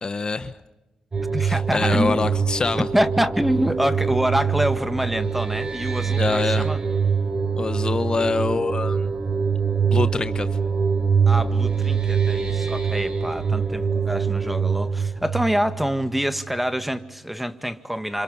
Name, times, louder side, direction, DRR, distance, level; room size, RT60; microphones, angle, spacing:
voice 1, 0.0-0.5 1.4-2.9 6.2-6.6 7.6-9.1 9.8-10.5, left 4 dB, 40° left, 1.1 m, -25 dB
sound 1, 1.1-16.6, right 6 dB, 45° right, 5.0 m, -24 dB
voice 2, 1.3-2.2 2.8-6.8 11.3-18.2, equal, 5° right, 1.8 m, -26 dB
27.5 x 26.5 x 5.6 m
cardioid pair, 60°, 2 cm